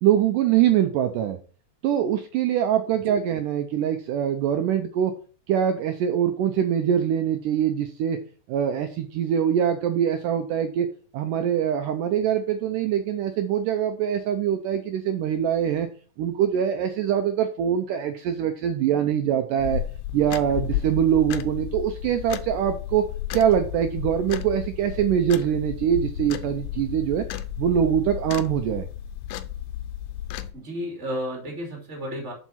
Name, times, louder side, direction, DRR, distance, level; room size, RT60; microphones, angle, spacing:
voice 1, 0.0-1.4 1.8-5.2 5.5-8.2 8.5-10.9 11.1-15.9 16.2-19.8 20.1-23.1 23.3-27.3 27.6-28.9, right 9 dB, 80° right, 8 dB, 2.0 m, -23 dB
sound 1, 19.6-30.5, left 11 dB, 75° left, 2.1 m, -33 dB
voice 2, 30.5-32.3, equal, 20° right, 0 dB, 2.8 m, -32 dB
7.3 x 5.6 x 5.6 m, 0.39 s
omnidirectional pair, 4.3 m